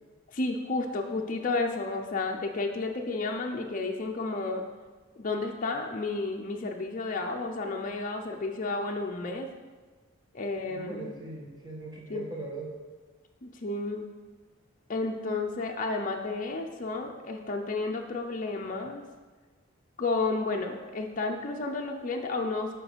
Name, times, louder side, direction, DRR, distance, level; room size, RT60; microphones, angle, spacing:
voice 1, 0.3-4.6 5.1-9.5 10.3-11.2 12.1-12.3 13.4-14.1 14.9-19.0 20.0-22.7, left 3 dB, 40° left, 2 dB, 0.5 m, -32 dB
voice 2, 10.7-12.7, right 3 dB, 20° right, -2 dB, 1.3 m, -40 dB
7.5 x 4.5 x 5.0 m, 1.3 s
head